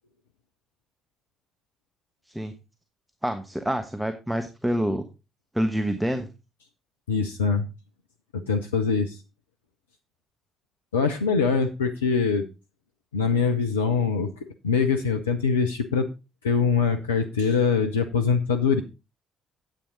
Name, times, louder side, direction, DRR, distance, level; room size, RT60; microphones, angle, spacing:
voice 1, 3.2-5.1 5.5-6.3, equal, 5° right, 8 dB, 1.2 m, -27 dB
voice 2, 7.1-7.7 8.3-9.2 10.9-12.4 13.1-14.3 14.6-16.1 16.4-18.8, left 5 dB, 80° left, 4 dB, 0.7 m, -23 dB
10.0 x 8.5 x 3.9 m, 0.28 s
figure-of-eight pair, 45°, 0 cm